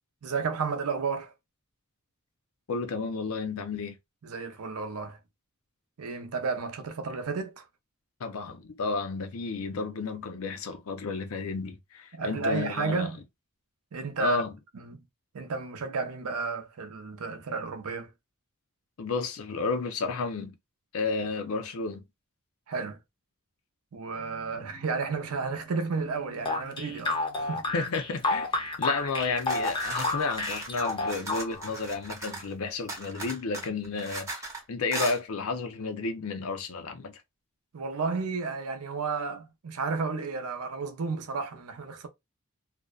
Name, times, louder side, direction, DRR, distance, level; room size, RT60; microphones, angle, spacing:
voice 1, 0.2-1.3 4.2-5.2 6.0-7.6 12.1-13.2 13.9-14.4 14.7-15.0 15.3-18.1 22.7-23.0 23.9-27.6 37.7-42.1, right 4 dB, 90° right, 0.6 m, -32 dB
voice 2, 2.7-3.9 8.2-13.1 14.2-14.5 19.0-20.5 20.9-22.0 24.6-24.7 27.7-28.5 28.8-37.1, left 4 dB, 70° left, 0.5 m, -32 dB
sound 1, 24.1-28.7, right 3 dB, 50° right, 0.8 m, -53 dB
sound 2, 26.5-31.8, left 3 dB, 25° left, 0.5 m, -30 dB
sound 3, 29.2-32.5 32.9-34.6 34.9-35.2, right 2 dB, 15° right, 0.7 m, -38 dB
2.5 x 2.1 x 2.3 m
head